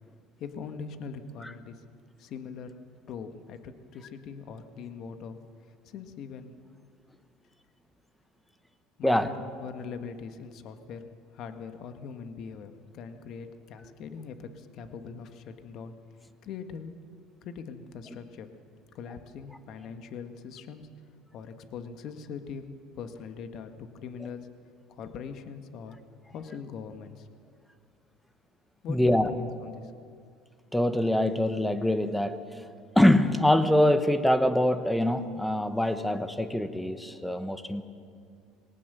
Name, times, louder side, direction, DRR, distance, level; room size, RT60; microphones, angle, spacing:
voice 1, 0.4-1.8 2.2-2.8 3.1-5.4 5.8-6.5 9.0-9.3 9.6-11.0 11.3-15.9 16.4-16.9 17.4-18.5 18.9-20.9 21.3-24.5 24.9-26.0 26.3-27.3 28.8-29.9, left 6 dB, 55° left, 8 dB, 1.6 m, -41 dB
voice 2, 28.9-29.3 30.7-32.6 32.9-37.8, left 1 dB, 5° left, 10 dB, 1.2 m, -24 dB
20.5 x 18.0 x 6.9 m, 2.2 s
supercardioid pair, 90°, 0 cm